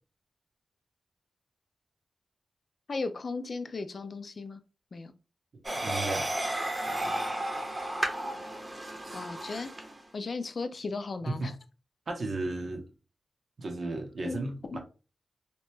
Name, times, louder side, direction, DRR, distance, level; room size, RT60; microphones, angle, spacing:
voice 1, 2.9-4.6 4.9-5.1 9.1-9.7 10.1-11.5 14.2-14.8, left 3 dB, 60° left, 0.4 m, -36 dB
sound 1, 5.6-10.0, right 1 dB, 30° right, 0.8 m, -33 dB
voice 2, 5.7-6.3 11.3-11.5 12.1-12.8 13.6-14.8, right 2 dB, 65° right, 0.8 m, -34 dB
2.9 x 2.2 x 3.2 m
cardioid pair, 55°, 0 cm